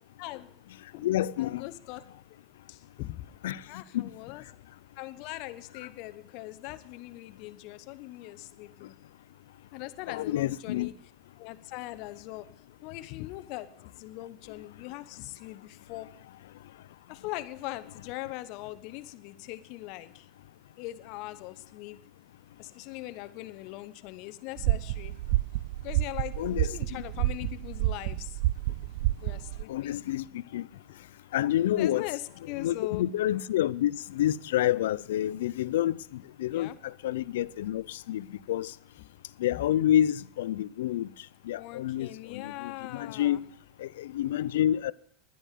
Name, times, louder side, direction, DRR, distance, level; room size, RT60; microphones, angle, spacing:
voice 1, 0.2-0.6 0.9-1.1 1.4-2.0 2.7-3.3 3.7-4.4 5.0-9.0 9.7-10.9 11.4-12.5 12.8-16.1 17.1-20.3 20.8-22.0 22.6-25.2 25.8-28.4 28.7-28.8 29.2-30.0 31.8-33.1 36.5-36.8 39.0-39.2 39.5-39.6 41.5-43.4, left 17 dB, 60° left, 0.9 m, -41 dB
voice 2, 1.0-1.7 3.4-3.6 3.9-4.1 10.1-10.9 26.4-26.7 29.7-30.2 30.5-30.7 31.3-32.1 32.6-38.7 39.4-41.1 41.5-43.4 43.8-44.9, left 12 dB, 90° left, 0.4 m, -28 dB
sound 1, 24.6-29.6, right 17 dB, 70° right, 0.4 m, -29 dB
11.0 x 10.0 x 7.5 m
supercardioid pair, 115°, 0 cm